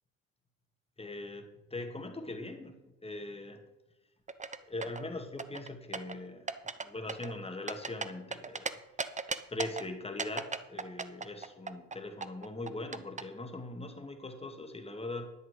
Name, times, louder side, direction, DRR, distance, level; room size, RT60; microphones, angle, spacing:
voice 1, 1.0-2.8 3.0-3.6 4.6-6.5 6.8-8.8 9.5-15.2, left 2 dB, 15° left, 5 dB, 2.2 m, -41 dB
sound 1, 4.3-5.0 5.4-6.2 6.5-6.8 7.1-8.7 9.0-9.8 10.2-13.2, right 4 dB, 20° right, 0.9 m, -36 dB
11.0 x 9.9 x 5.0 m, 0.99 s
hypercardioid pair, 50°, 38 cm